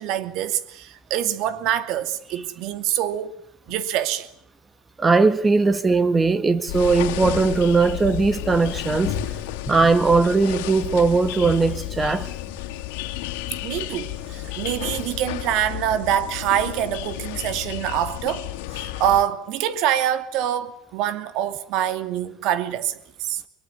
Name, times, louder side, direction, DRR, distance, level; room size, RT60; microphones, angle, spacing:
voice 1, 0.0-3.4 3.7-4.3 13.6-23.4, right 10 dB, 60° right, 2.7 m, -25 dB
voice 2, 5.0-9.2 9.7-12.3 14.5-14.6, right 4 dB, 15° right, 1.7 m, -19 dB
sound 1, 6.7-19.2, left 14 dB, 90° left, 2.8 m, -32 dB
24.0 x 23.5 x 10.0 m
cardioid pair, 150°, 0 cm